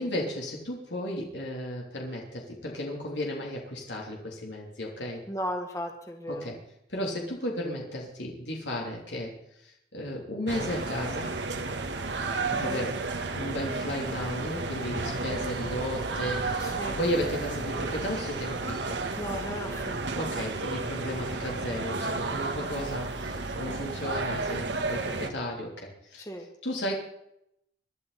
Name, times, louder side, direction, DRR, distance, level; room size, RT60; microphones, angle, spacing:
voice 1, 0.0-5.2 6.3-6.6 6.9-9.3 9.6-11.3 12.5-12.9 13.3-19.0 20.2-26.2 26.6-26.9, equal, 90° left, -1 dB, 3.4 m, -34 dB
voice 2, 5.3-6.5 12.5-12.9 16.6-17.0 19.2-20.2 26.2-26.5, equal, 20° left, 2 dB, 1.9 m, -36 dB
sound 1, 10.5-25.3, right 3 dB, 90° right, 1.7 m, -32 dB
23.5 x 12.0 x 4.3 m, 0.78 s
head